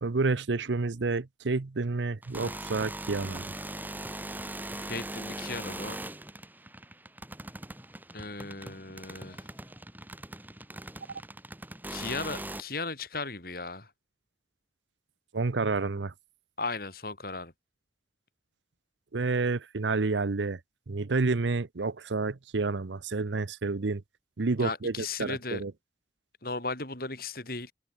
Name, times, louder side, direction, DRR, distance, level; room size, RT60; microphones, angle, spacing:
voice 1, 0.0-3.5 15.3-16.1 19.1-20.6 20.9-24.0 24.4-25.7, right 3 dB, 90° right, 0.8 m, -29 dB
sound 1, 2.2-12.6, right 1 dB, 10° right, 4.9 m, -40 dB
voice 2, 4.9-6.0 8.1-9.5 11.9-13.9 16.6-17.5 24.6-25.6 26.4-27.7, left 3 dB, 55° left, 7.2 m, -36 dB
open air
head